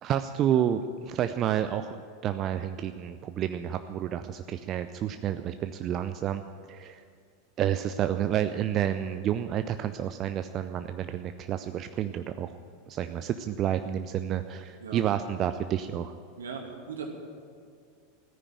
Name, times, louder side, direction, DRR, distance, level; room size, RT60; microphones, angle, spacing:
voice 1, 0.0-6.4 6.7-7.0 7.6-12.6 12.9-16.1, right 10 dB, 40° right, 9 dB, 0.5 m, -30 dB
voice 2, 16.4-17.1, right 6 dB, 75° right, 2 dB, 2.4 m, -38 dB
14.5 x 10.0 x 9.1 m, 2.3 s
figure-of-eight pair, 85°, 0 cm